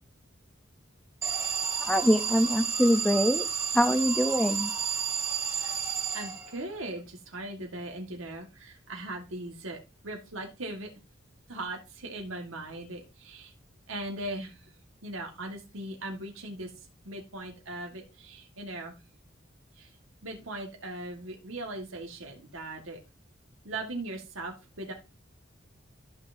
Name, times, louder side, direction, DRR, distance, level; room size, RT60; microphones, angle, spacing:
Alarm, 1.2-6.8, right 6 dB, 15° right, 1.7 m, -31 dB
voice 1, 1.8-3.5 3.7-4.7, equal, 5° left, 10 dB, 0.5 m, -24 dB
voice 2, 6.1-9.8 10.0-10.9 11.5-13.5 13.9-14.7 15.0-18.9 19.7-19.9 20.2-23.0 23.6-24.9, right 2 dB, 90° right, 2 dB, 1.7 m, -39 dB
13.0 x 5.8 x 2.6 m, 0.27 s
head